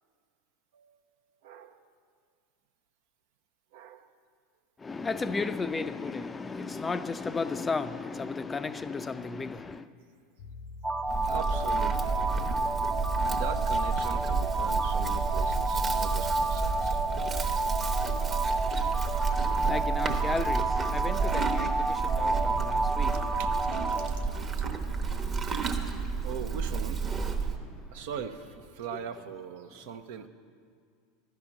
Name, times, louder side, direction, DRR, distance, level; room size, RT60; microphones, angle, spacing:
voice 1, 1.4-1.8 3.7-4.1 11.3-12.2 13.0-17.0 20.1-20.2 23.3-24.2 26.2-27.1 27.9-30.3, right 7 dB, 65° right, 0.6 m, -41 dB
voice 2, 4.8-9.9 19.4-23.4 23.9-24.8 25.5-26.3 27.6-27.8 28.9-29.1 29.7-29.8, left 4 dB, 20° left, 0.4 m, -35 dB
sound 1, 10.4-19.0, left 4 dB, 60° left, 0.7 m, -47 dB
sound 2, 10.8-24.1, right 2 dB, 10° right, 0.7 m, -30 dB
Livestock farm animals working animals, 11.1-27.6, right 5 dB, 30° right, 1.0 m, -31 dB
12.5 x 5.8 x 8.8 m
hypercardioid pair, 85°, 0 cm